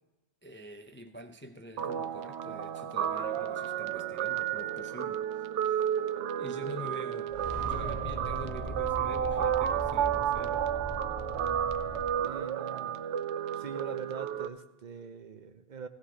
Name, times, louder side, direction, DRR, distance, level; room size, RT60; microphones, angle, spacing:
voice 1, 0.4-5.9 6.4-7.4 7.6-10.6, equal, 20° left, 6 dB, 0.3 m, -45 dB
Guitar, 1.8-14.5, right 9 dB, 90° right, 0.9 m, -32 dB
sound 1, 7.3-12.0, equal, 30° right, 3.5 m, -39 dB
voice 2, 12.2-13.0 13.5-15.9, right 6 dB, 50° right, 8 dB, 0.8 m, -43 dB
17.0 x 16.0 x 2.9 m, 1.1 s
omnidirectional pair, 1.1 m